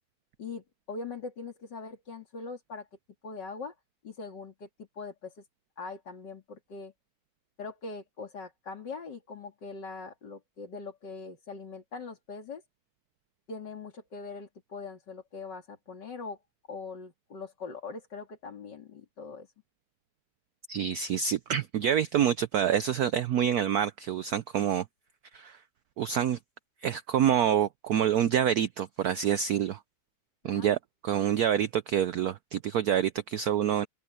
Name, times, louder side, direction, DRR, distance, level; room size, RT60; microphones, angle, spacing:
voice 1, 0.4-2.9 3.2-3.7 4.0-4.7 5.0-5.4 5.8-6.9 7.6-12.6 13.5-16.4 16.7-19.5 30.4-30.7, left 4 dB, 55° left, 3.2 m, -41 dB
voice 2, 20.7-24.9 25.3-25.6 26.0-26.4 26.8-29.8 30.4-30.8 31.0-33.9, right 9 dB, 75° right, 0.8 m, -27 dB
open air
omnidirectional pair, 2.3 m